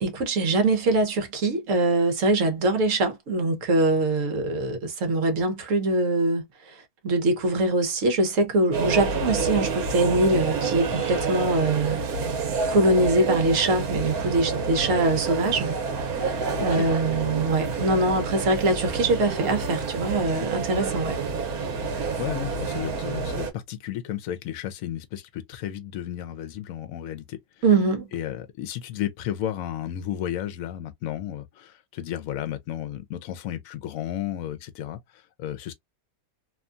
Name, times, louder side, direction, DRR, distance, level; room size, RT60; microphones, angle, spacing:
voice 1, 0.0-6.4 7.0-15.8 16.6-21.2 27.6-28.1, right 2 dB, 65° right, 1.2 m, -23 dB
sound 1, 8.7-23.5, right 4 dB, 85° right, 1.3 m, -28 dB
voice 2, 22.2-27.4 28.1-35.7, left 11 dB, 70° left, 1.0 m, -33 dB
2.9 x 2.3 x 2.4 m
omnidirectional pair, 1.5 m